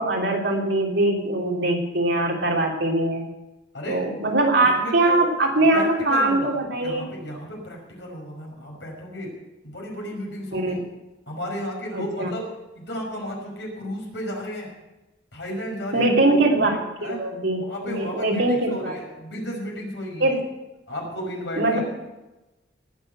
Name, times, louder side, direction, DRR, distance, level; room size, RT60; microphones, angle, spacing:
voice 1, 0.0-3.2 3.9-7.0 10.5-10.8 11.9-12.3 15.9-19.0 20.2-20.4 21.6-21.8, right 2 dB, 75° right, 0 dB, 3.1 m, -22 dB
voice 2, 4.8-5.2 5.5-9.3 9.6-10.8 11.3-12.5 12.8-14.7 15.3-16.4 17.0-17.2 17.6-20.3 20.9-21.8, equal, 75° left, -1 dB, 5.4 m, -33 dB
19.0 x 6.8 x 7.7 m, 1.0 s
head